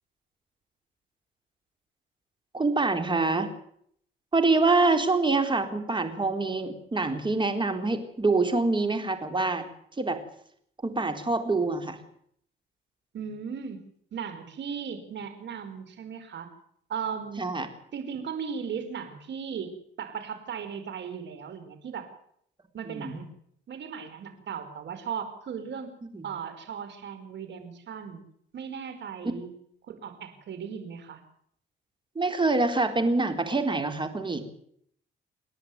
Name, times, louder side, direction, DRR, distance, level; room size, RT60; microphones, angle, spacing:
voice 1, 2.5-3.5 4.3-9.7 10.0-10.2 10.8-12.0 17.4-17.7 22.8-23.2 26.1-26.2 32.2-34.6, right 3 dB, 25° right, 7 dB, 4.0 m, -25 dB
voice 2, 13.1-13.8 14.1-16.5 16.9-17.5 17.9-22.1 22.7-23.3 23.7-25.9 26.2-28.2 28.5-29.5 29.9-31.2, right 7 dB, 65° right, 9 dB, 5.1 m, -37 dB
28.0 x 10.5 x 9.6 m, 0.67 s
cardioid pair, 90°, 20 cm